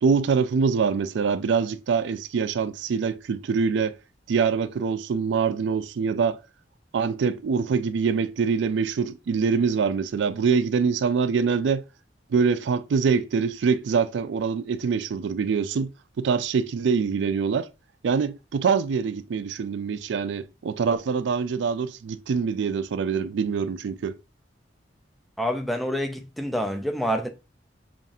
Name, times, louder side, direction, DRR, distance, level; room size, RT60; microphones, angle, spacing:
voice 1, 0.0-4.0 4.3-6.4 6.9-11.8 12.3-15.9 16.2-17.7 18.0-24.2, right 5 dB, 80° right, 0.3 m, -24 dB
voice 2, 25.4-27.3, equal, ahead, 0.4 m, -27 dB
5.4 x 2.5 x 2.4 m
head